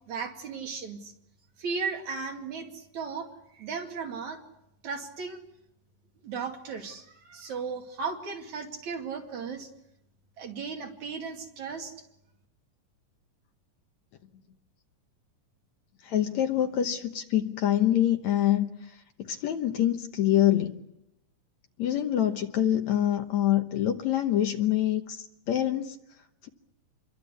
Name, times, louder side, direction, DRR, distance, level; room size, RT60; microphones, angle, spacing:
voice 1, 0.1-1.1 1.6-4.4 4.8-5.4 6.2-9.7 10.4-11.9, right 5 dB, 60° right, 2 dB, 3.7 m, -36 dB
voice 2, 16.0-18.7 19.2-20.8 21.8-26.0, left 11 dB, 65° left, 6 dB, 2.2 m, -25 dB
27.5 x 23.0 x 8.2 m, 0.85 s
omnidirectional pair, 3.9 m